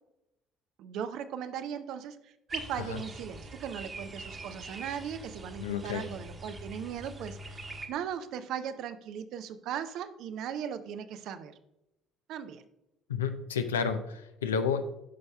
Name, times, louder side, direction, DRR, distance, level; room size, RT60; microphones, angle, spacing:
voice 1, 0.8-11.5 12.3-12.6, right 8 dB, 60° right, 11 dB, 0.5 m, -38 dB
sound 1, 2.5-7.9, right 2 dB, 30° right, 1.2 m, -43 dB
voice 2, 5.6-6.1 13.1-14.8, left 6 dB, 80° left, 8 dB, 0.5 m, -31 dB
11.5 x 5.4 x 2.2 m, 0.89 s
figure-of-eight pair, 55°, 0 cm